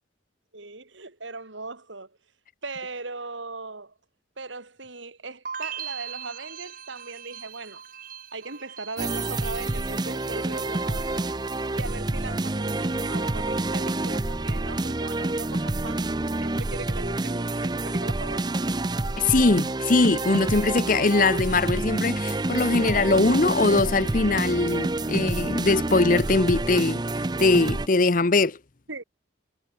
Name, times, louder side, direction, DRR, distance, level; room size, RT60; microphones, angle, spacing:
voice 1, 0.5-2.2 2.6-3.9 4.4-7.8 8.3-11.3 11.7-16.1 16.4-18.6 28.9-29.0, right 3 dB, 85° right, 3.5 m, -39 dB
sound 1, 5.5-10.5 10.8-11.4, right 8 dB, 45° right, 1.4 m, -40 dB
sound 2, 9.0-27.9, right 2 dB, 20° right, 0.6 m, -28 dB
voice 2, 19.2-27.0 27.4-28.6, left 3 dB, 45° left, 0.8 m, -21 dB
head